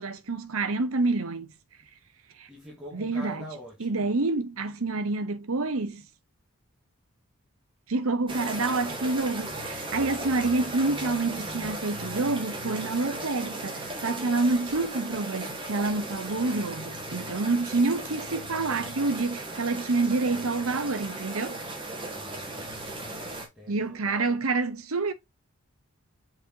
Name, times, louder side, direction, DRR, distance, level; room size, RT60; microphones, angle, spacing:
voice 1, 0.0-1.5 2.4-2.5 2.9-3.4 3.8-6.0 7.9-21.6 23.7-25.1, right 3 dB, 75° right, 0.9 m, -28 dB
voice 2, 2.5-4.1 22.1-24.4, right 1 dB, 5° right, 2.2 m, -45 dB
sound 1, 8.3-23.5, right 2 dB, 20° right, 1.7 m, -36 dB
7.8 x 4.3 x 2.8 m
head